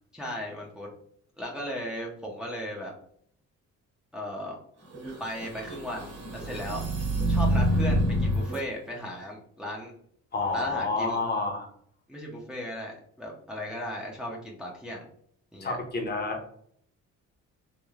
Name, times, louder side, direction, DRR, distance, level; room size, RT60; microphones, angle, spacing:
voice 1, 0.1-0.9 1.4-2.9 4.1-4.6 5.2-6.8 7.3-9.9 10.5-11.2 12.1-15.0 15.5-15.8, equal, 5° right, -2 dB, 0.6 m, -36 dB
sound 1, 4.9-8.6, equal, 60° right, 1.5 m, -27 dB
voice 2, 10.3-11.7 15.6-16.5, left 3 dB, 35° left, 2 dB, 0.7 m, -29 dB
3.1 x 2.2 x 2.3 m, 0.64 s
cardioid pair, 90°, 30 cm